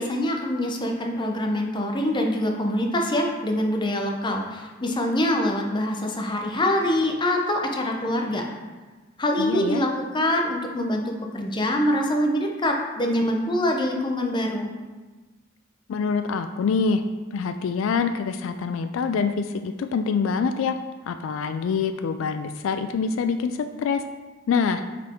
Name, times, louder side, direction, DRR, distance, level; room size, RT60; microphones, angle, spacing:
voice 1, 0.0-8.4 9.2-14.7, left 1 dB, 25° left, 2 dB, 0.7 m, -24 dB
voice 2, 9.4-9.9 15.9-17.0 17.3-20.8 21.1-24.0 24.5-24.8, left 5 dB, 70° left, 9 dB, 0.3 m, -25 dB
6.0 x 4.3 x 4.3 m, 1.3 s
head